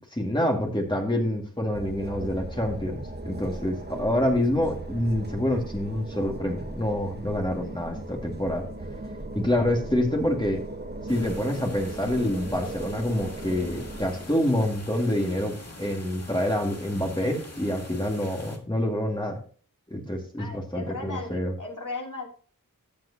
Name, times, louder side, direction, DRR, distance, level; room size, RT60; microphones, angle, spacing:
voice 1, 0.1-8.6 9.3-10.6 11.1-19.4 19.9-21.5, left 1 dB, 15° left, 1 dB, 2.1 m, -27 dB
sound 1, 1.7-14.3, right 2 dB, 30° right, 1.3 m, -38 dB
sound 2, 11.1-18.6, left 2 dB, 45° left, 2.2 m, -44 dB
voice 2, 20.4-22.3, left 3 dB, 65° left, 0 dB, 3.1 m, -36 dB
14.0 x 7.6 x 2.8 m, 0.42 s
wide cardioid pair, 50°, 34 cm